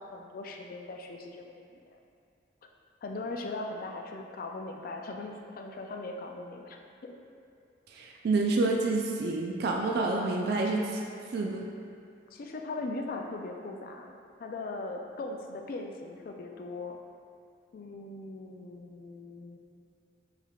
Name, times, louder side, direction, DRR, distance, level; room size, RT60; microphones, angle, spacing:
voice 1, 0.0-1.7 1.9-2.0 3.0-7.1 12.3-17.0 17.7-19.6, left 2 dB, 50° left, 3 dB, 0.3 m, -39 dB
voice 2, 7.9-11.0 11.3-11.6, right 3 dB, 55° right, 0 dB, 0.3 m, -28 dB
4.5 x 3.5 x 2.3 m, 2.4 s
head